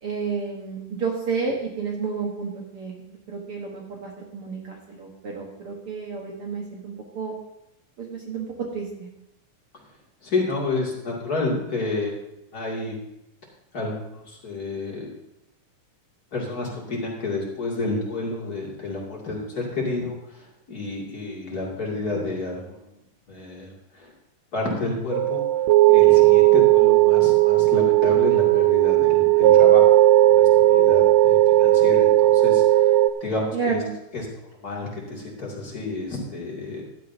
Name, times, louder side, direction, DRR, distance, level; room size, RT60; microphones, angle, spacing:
voice 1, 0.0-7.3 8.0-9.1 33.5-33.9, right 5 dB, 55° right, -1 dB, 1.8 m, -31 dB
voice 2, 10.2-12.1 12.5-13.0 13.7-15.1 16.3-22.8 23.3-24.1 24.5-25.4 25.9-33.8 34.1-36.8, left 2 dB, 30° left, -3 dB, 2.6 m, -30 dB
sound 1, 25.1-33.1, right 16 dB, 85° right, 1.5 m, -16 dB
15.0 x 11.5 x 2.7 m, 0.86 s
omnidirectional pair, 3.7 m